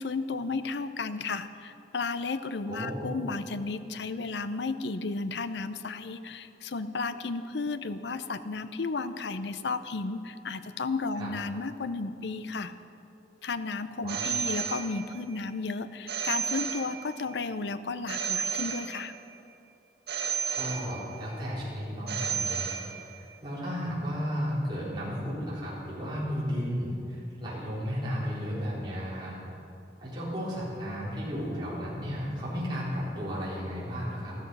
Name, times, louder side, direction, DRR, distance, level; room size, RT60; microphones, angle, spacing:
voice 1, 0.0-12.7 13.4-19.1, left 3 dB, 80° left, 12 dB, 0.6 m, -33 dB
voice 2, 2.6-3.1 11.1-11.3 14.0-14.3 20.5-29.4 30.0-34.3, equal, 25° right, -8 dB, 4.1 m, -34 dB
Telephone, 14.1-15.3 16.1-17.3 18.1-19.3 20.1-21.3 22.1-23.3, right 7 dB, 70° right, 2.0 m, -33 dB
13.5 x 13.0 x 5.5 m, 2.8 s
head